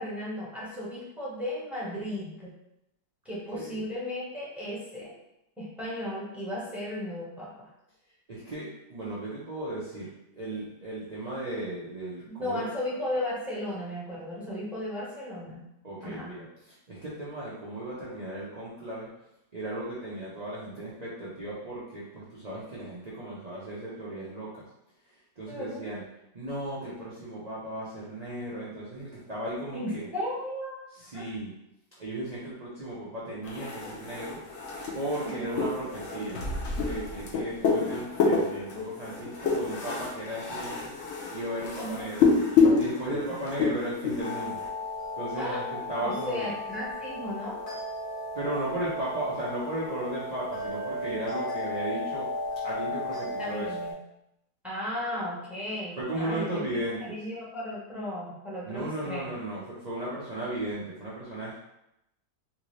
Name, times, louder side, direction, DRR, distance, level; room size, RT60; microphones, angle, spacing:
voice 1, 0.0-2.5 3.2-5.1 5.6-7.7 12.3-15.6 16.0-16.3 25.5-25.9 29.7-30.8 31.1-31.3 35.2-35.6 41.8-42.1 43.3-43.4 45.4-47.6 53.4-53.9 54.6-59.3, left 1 dB, ahead, -7 dB, 0.8 m, -35 dB
voice 2, 8.3-10.1 10.3-12.6 15.8-16.5 16.9-19.1 19.5-24.6 25.4-26.0 26.3-30.1 31.0-31.5 32.0-34.4 34.9-36.5 36.8-40.9 41.3-42.2 42.8-44.6 45.2-46.5 48.3-52.3 52.6-53.7 56.0-57.2 58.6-61.6, right 1 dB, 65° right, -8 dB, 0.4 m, -35 dB
sound 1, 33.4-44.7, left 4 dB, 60° left, 0.8 m, -28 dB
sound 2, 44.2-53.9, left 1 dB, 30° left, 0.7 m, -35 dB
3.4 x 2.6 x 3.1 m, 0.86 s
omnidirectional pair, 1.8 m